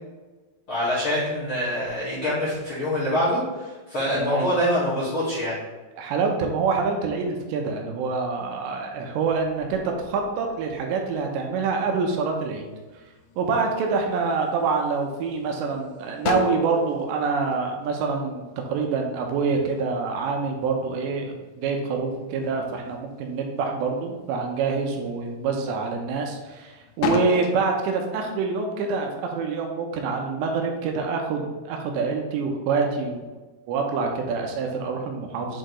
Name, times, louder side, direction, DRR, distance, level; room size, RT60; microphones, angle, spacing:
voice 1, 0.7-5.6, equal, 40° left, -11 dB, 2.2 m, -25 dB
voice 2, 4.1-4.5 6.0-12.6 13.4-18.4 18.7-33.2 33.7-35.6, right 4 dB, 85° right, 2 dB, 3.0 m, -26 dB
sound 1, 9.3-11.2 11.7-12.4 12.9-13.5 13.9-14.8 15.3-15.4 15.7-18.6 19.0-21.3 21.6-22.7 23.1-23.7 24.2-24.4 24.9-26.5 26.9-27.6, left 5 dB, 85° left, 2.6 m, -32 dB
7.6 x 4.4 x 3.1 m, 1.2 s
omnidirectional pair, 5.0 m